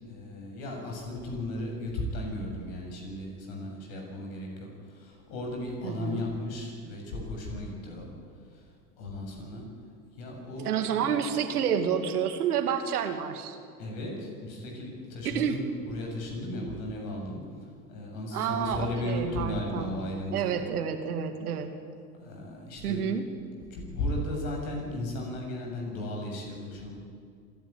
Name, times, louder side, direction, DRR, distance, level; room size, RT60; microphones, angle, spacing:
voice 1, 0.0-8.1 9.0-9.7 10.2-11.1 13.8-17.4 17.9-20.6 22.2-23.2 23.7-27.0, left 1 dB, 60° left, 1 dB, 7.5 m, -35 dB
voice 2, 5.8-6.3 10.6-13.6 15.2-15.6 18.3-19.9 20.3-21.8 22.8-23.3, right 8 dB, 75° right, 7 dB, 2.4 m, -29 dB
26.0 x 12.0 x 9.8 m, 2.2 s
hypercardioid pair, 80°, 46 cm